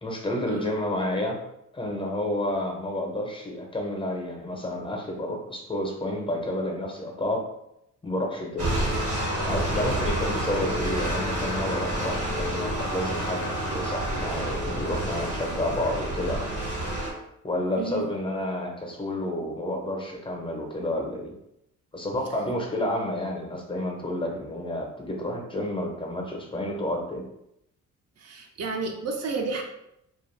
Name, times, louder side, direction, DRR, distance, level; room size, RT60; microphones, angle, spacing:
voice 1, 0.0-1.4 1.7-7.4 8.0-8.7 9.4-16.5 17.4-21.3 21.9-27.3, left 1 dB, 15° left, 0 dB, 0.6 m, -30 dB
sound 1, 8.6-17.1, right 1 dB, 80° right, 1.3 m, -28 dB
voice 2, 28.2-29.6, right 4 dB, 55° right, 2 dB, 0.5 m, -31 dB
2.4 x 2.3 x 3.1 m, 0.81 s
cardioid pair, 90°, 30 cm